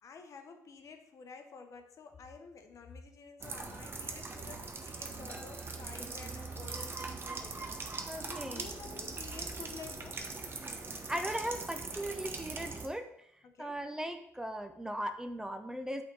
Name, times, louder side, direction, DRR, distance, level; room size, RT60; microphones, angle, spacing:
voice 1, 0.0-7.7 8.2-10.2 13.4-13.8, left 4 dB, 50° left, 6 dB, 0.9 m, -50 dB
sound 1, 3.4-12.9, right 3 dB, 35° right, 1.0 m, -41 dB
sound 2, 5.3-7.0, equal, 20° left, 1.6 m, -58 dB
voice 2, 8.1-8.7 11.1-13.1 13.6-16.0, equal, 10° right, 7 dB, 0.6 m, -38 dB
8.4 x 3.8 x 3.9 m, 0.73 s
supercardioid pair, 75°, 7 cm